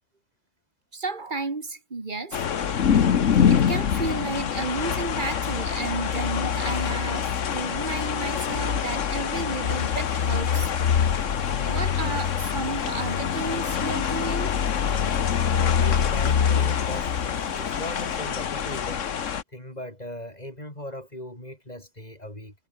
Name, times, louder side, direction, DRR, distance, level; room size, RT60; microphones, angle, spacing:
voice 1, 0.9-2.4 3.5-10.7 11.7-14.6, right 3 dB, 40° right, 2.2 m, -32 dB
sound 1, 2.3-19.4, left 8 dB, 85° left, 1.5 m, -25 dB
sound 2, 9.7-18.2, right 2 dB, 85° right, 6.6 m, -48 dB
voice 2, 15.5-19.1 19.5-22.5, left 1 dB, 35° left, 7.0 m, -38 dB
omnidirectional pair, 1.3 m